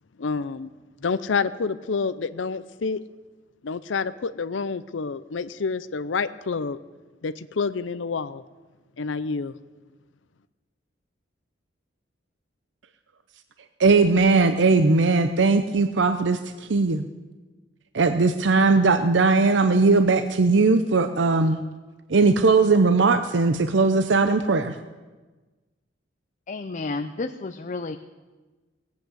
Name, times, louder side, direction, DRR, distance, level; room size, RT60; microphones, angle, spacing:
voice 1, 0.2-0.7 1.0-3.0 3.6-6.8 7.2-8.4 9.0-9.5, left 4 dB, 85° left, 14 dB, 0.6 m, -28 dB
voice 2, 13.8-17.1 17.9-21.6 22.1-24.8, right 3 dB, 75° right, 9 dB, 0.7 m, -19 dB
voice 3, 26.5-28.0, left 3 dB, 40° left, 7 dB, 0.6 m, -31 dB
18.5 x 8.4 x 8.0 m, 1.3 s
head